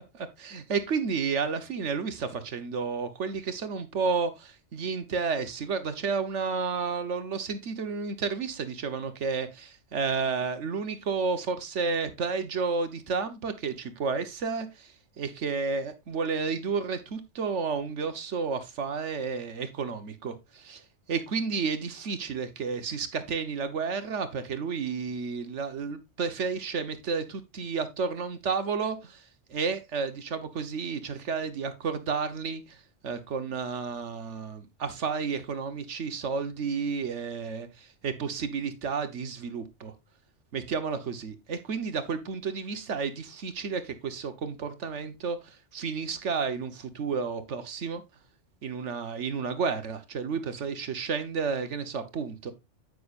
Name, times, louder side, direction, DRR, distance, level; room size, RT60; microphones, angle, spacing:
voice 1, 0.1-14.9 15.2-20.8 21.1-29.2 29.5-32.6 33.0-39.9 40.5-48.0 48.6-52.5, right 5 dB, 70° right, 1.4 m, -31 dB
9.7 x 7.8 x 2.5 m
omnidirectional pair, 1.3 m